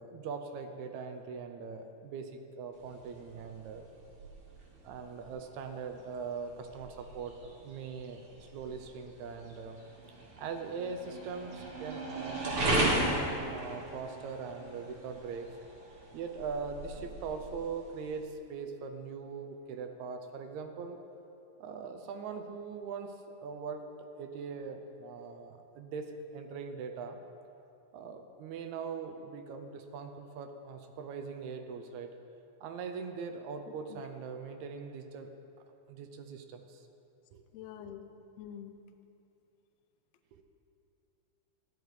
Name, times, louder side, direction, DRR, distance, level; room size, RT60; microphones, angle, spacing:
voice 1, 0.0-3.8 4.8-9.8 10.1-15.5 16.1-21.0 21.6-23.8 24.2-27.2 27.9-32.2 32.6-35.3 35.9-36.9 37.3-37.4 40.3-40.4, right 5 dB, 80° right, 6 dB, 2.0 m, -41 dB
sound 1, 2.7-18.3, right 1 dB, 55° right, 2.2 m, -37 dB
voice 2, 37.5-38.8, left 9 dB, 75° left, 7 dB, 1.6 m, -46 dB
14.0 x 11.0 x 3.2 m, 2.7 s
omnidirectional pair, 3.4 m